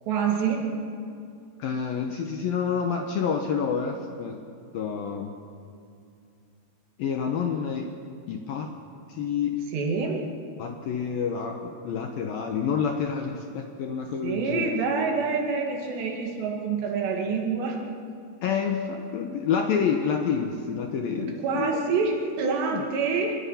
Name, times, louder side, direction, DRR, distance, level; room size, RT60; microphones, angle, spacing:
voice 1, 0.0-0.7 9.7-10.3 14.2-17.8 21.2-23.4, right 5 dB, 65° right, 1 dB, 4.1 m, -27 dB
voice 2, 1.6-4.4 4.7-5.3 7.0-7.9 8.3-8.7 9.1-9.6 10.6-14.7 18.4-21.8 22.7-22.9, left 6 dB, 70° left, 3 dB, 2.3 m, -28 dB
26.0 x 21.5 x 5.8 m, 2.3 s
omnidirectional pair, 5.4 m